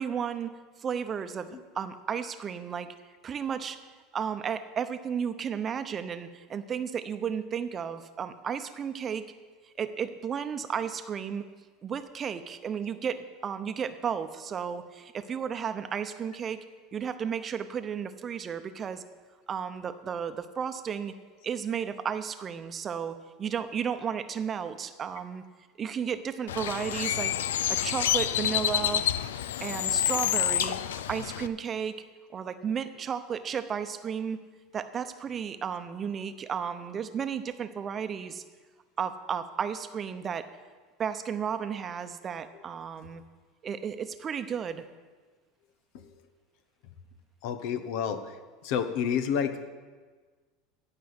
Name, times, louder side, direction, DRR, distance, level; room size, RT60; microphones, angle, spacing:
voice 1, 0.0-1.5 1.7-2.9 3.2-3.8 4.1-9.2 9.8-11.4 11.8-16.6 16.9-19.0 19.5-21.1 21.4-25.4 25.8-27.3 27.7-29.1 29.6-30.8 31.1-32.0 32.3-34.4 34.7-38.4 39.0-40.5 41.0-43.2 43.6-44.8, right 7 dB, 35° right, 10 dB, 0.8 m, -33 dB
Bird, 26.5-31.5, left 11 dB, 90° left, 0.4 m, -28 dB
voice 2, 47.4-48.3 48.6-49.7, left 7 dB, 70° left, 10 dB, 1.0 m, -29 dB
15.5 x 5.5 x 8.1 m, 1.4 s
supercardioid pair, 100°, 0 cm